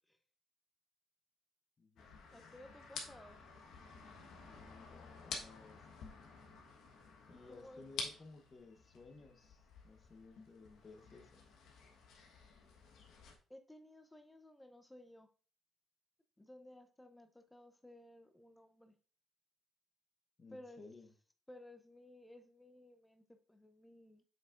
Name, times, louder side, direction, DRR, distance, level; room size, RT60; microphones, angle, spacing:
voice 1, 1.8-2.2 4.4-5.9 7.3-11.4 20.4-21.1, left 3 dB, 30° left, 5 dB, 1.0 m, -57 dB
sound 1, 2.0-13.4, left 4 dB, 80° left, 1.3 m, -51 dB
voice 2, 2.3-3.4 7.3-7.8 13.5-15.3 16.4-19.0 20.5-20.8 21.5-24.2, left 1 dB, 10° left, 8 dB, 0.6 m, -57 dB
7.2 x 5.7 x 2.5 m, 0.40 s
cardioid pair, 125°, 0 cm